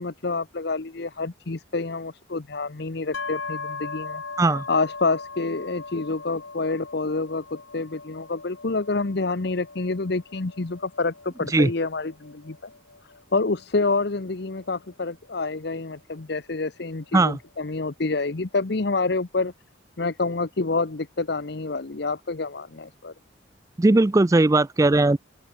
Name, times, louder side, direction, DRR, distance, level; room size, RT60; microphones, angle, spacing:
voice 1, 0.0-4.2 4.7-12.7 13.0-19.5 20.0-23.1, left 3 dB, 55° left, 0.9 m, -28 dB
sound 1, 3.1-16.8, left 4 dB, 85° left, 3.8 m, -40 dB
voice 2, 23.8-25.2, right 2 dB, 15° right, 0.4 m, -18 dB
open air
head